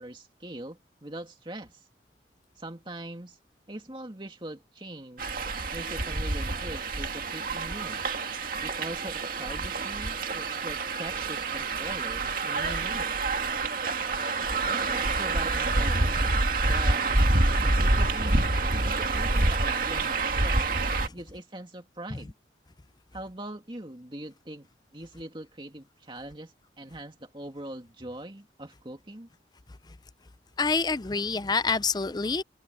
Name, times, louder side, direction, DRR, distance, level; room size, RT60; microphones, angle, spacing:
voice 1, 0.0-1.9 2.6-3.4 3.7-5.3 5.7-8.0 8.6-13.2 14.7-17.1 17.6-18.4 18.8-20.7 21.1-22.3 23.1-24.7 24.9-29.3, right 1 dB, 30° right, 2.5 m, -42 dB
sound 1, 5.2-21.1, right 2 dB, 50° right, 2.2 m, -27 dB
voice 2, 30.6-32.4, left 4 dB, 25° left, 0.5 m, -27 dB
head